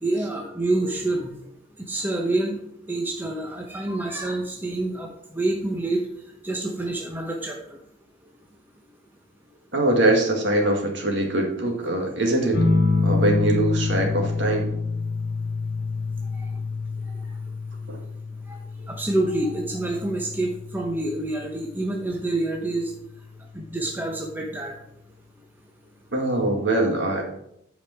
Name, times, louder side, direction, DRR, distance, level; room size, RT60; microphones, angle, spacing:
voice 1, 0.0-1.3 1.8-2.6 2.9-6.0 6.4-7.6 18.5-18.6 18.8-22.9 23.5-24.8, right 2 dB, 10° right, 0 dB, 0.9 m, -27 dB
voice 2, 9.7-12.6 13.0-14.7 17.9-18.0 26.1-27.2, right 1 dB, 60° right, 1 dB, 1.9 m, -22 dB
sound 1, 12.5-21.6 23.1-23.6, left 3 dB, 65° left, 1.9 m, -27 dB
8.3 x 5.1 x 5.8 m, 0.75 s
head